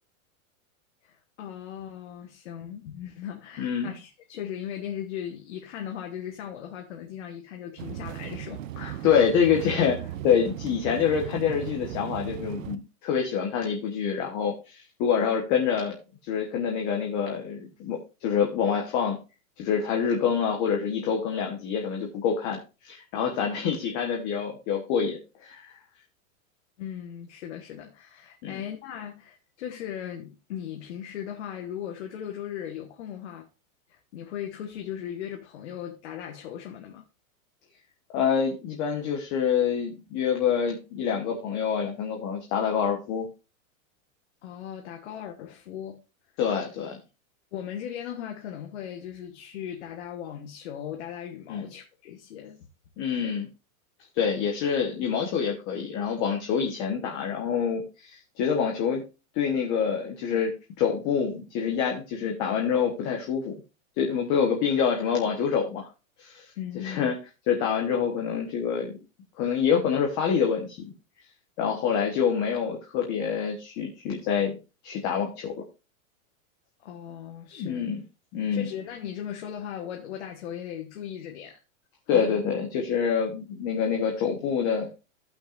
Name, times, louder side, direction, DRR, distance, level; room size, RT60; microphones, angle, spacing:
voice 1, 1.0-9.1 26.8-33.5 33.9-37.0 44.4-46.0 47.5-52.7 53.2-53.3 66.5-67.1 76.8-77.9 78.5-81.6 82.1-82.4, left 9 dB, 55° left, 1.4 m, -38 dB
voice 2, 3.6-3.9 8.8-16.0 16.3-19.2 19.6-25.7 28.4-28.6 38.1-43.3 46.4-47.0 51.5-51.7 53.0-53.5 54.1-59.0 59.3-60.5 60.8-63.5 64.0-65.9 66.2-66.4 66.7-67.2 67.5-69.0 69.4-70.8 71.6-74.5 74.8-75.6 77.6-78.0 78.3-78.7 82.1-84.9, left 7 dB, 25° left, 1.1 m, -26 dB
sound 1, 7.8-12.8, right 12 dB, 65° right, 0.9 m, -37 dB
16.0 x 5.8 x 2.5 m
supercardioid pair, 175°, 42 cm